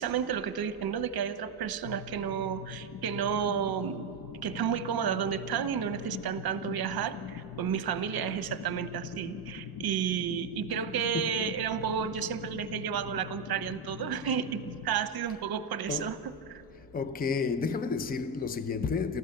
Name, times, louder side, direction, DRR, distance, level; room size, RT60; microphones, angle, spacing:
voice 1, 0.0-4.1 4.4-16.6, right 8 dB, 60° right, 1.0 m, -32 dB
sound 1, 1.9-14.9, left 8 dB, 70° left, 0.9 m, -42 dB
voice 2, 11.1-11.5 15.9-16.1 16.9-19.2, left 5 dB, 20° left, 0.6 m, -31 dB
27.0 x 14.5 x 6.7 m
wide cardioid pair, 150°, 40 cm